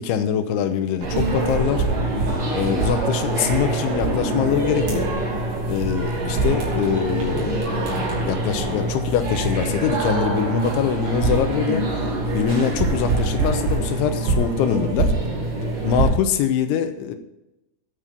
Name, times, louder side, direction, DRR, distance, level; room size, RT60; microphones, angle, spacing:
voice 1, 0.0-1.8 2.5-5.1 5.7-7.7 8.3-15.1 15.8-17.2, left 8 dB, 80° left, 8 dB, 3.2 m, -23 dB
sound 1, 1.0-16.1, right 2 dB, 45° right, 4.2 m, -24 dB
10.0 x 9.3 x 5.3 m, 0.93 s
omnidirectional pair, 5.5 m